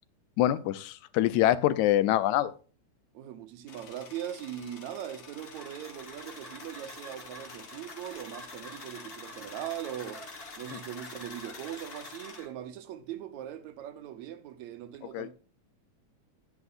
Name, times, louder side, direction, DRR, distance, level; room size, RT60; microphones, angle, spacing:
voice 1, 0.4-2.5 10.7-10.8 15.1-15.3, left 13 dB, 85° left, 2.0 m, -25 dB
voice 2, 3.1-10.2 10.6-15.3, right 11 dB, 75° right, 2.2 m, -40 dB
sound 1, 3.7-12.4, left 6 dB, 50° left, 1.7 m, -49 dB
sound 2, 5.4-12.5, left 1 dB, 20° left, 1.9 m, -47 dB
10.5 x 9.7 x 2.6 m
omnidirectional pair, 3.3 m